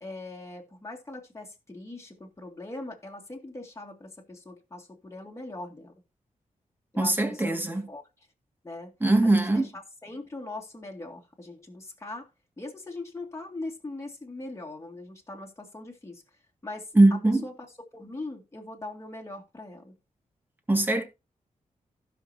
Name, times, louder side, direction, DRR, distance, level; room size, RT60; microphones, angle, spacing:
voice 1, 0.0-5.9 6.9-7.6 7.9-8.0 8.6-8.9 9.2-12.3 12.6-16.2 16.6-17.5 17.9-19.9, left 2 dB, 20° left, 2.1 m, -41 dB
voice 2, 7.0-7.9 9.0-9.7 16.9-17.5 20.7-21.0, right 2 dB, 15° right, 2.0 m, -21 dB
16.0 x 6.0 x 2.8 m
wide cardioid pair, 95°, 14 cm